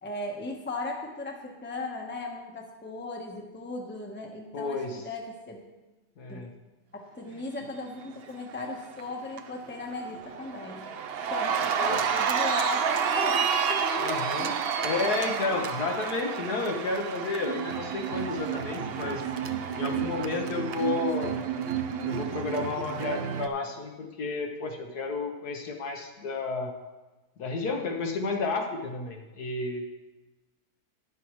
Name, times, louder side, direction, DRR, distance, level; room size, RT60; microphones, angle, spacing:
voice 1, 0.0-5.6 6.3-6.5 6.9-10.9 11.3-14.9, left 2 dB, 10° left, 0 dB, 1.0 m, -37 dB
voice 2, 4.5-5.0 6.2-6.5 11.8-12.0 14.0-14.5 14.8-19.2 19.7-21.4 22.0-26.7 27.4-29.8, left 3 dB, 70° left, 2 dB, 1.7 m, -31 dB
Cheering, 8.6-9.0 9.4-23.5, right 7 dB, 70° right, 0.5 m, -30 dB
11.5 x 10.0 x 3.1 m, 1.1 s
omnidirectional pair, 1.7 m